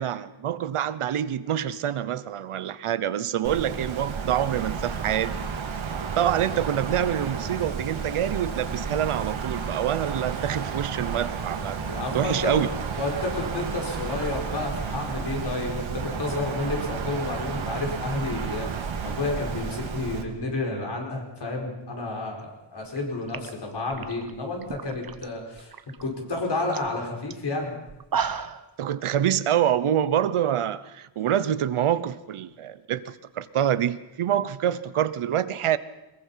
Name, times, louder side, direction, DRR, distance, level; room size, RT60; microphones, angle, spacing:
voice 1, 0.0-5.4 6.2-11.8 12.1-12.7 28.8-35.8, right 10 dB, 85° right, 1.0 m, -26 dB
Wind, 3.4-20.2, right 6 dB, 70° right, 2.2 m, -32 dB
sound 1, 6.4-14.5, right 2 dB, 25° right, 2.5 m, -48 dB
voice 2, 11.9-12.6 13.0-25.7 26.0-27.7, left 2 dB, 55° left, 5.2 m, -31 dB
sound 2, 23.0-23.1 23.3-25.3 25.6-26.0 26.4-26.5 26.7-26.9 27.3-27.4 27.9-28.7, right 7 dB, 45° right, 1.0 m, -33 dB
21.5 x 21.0 x 5.7 m
wide cardioid pair, 140°, 49 cm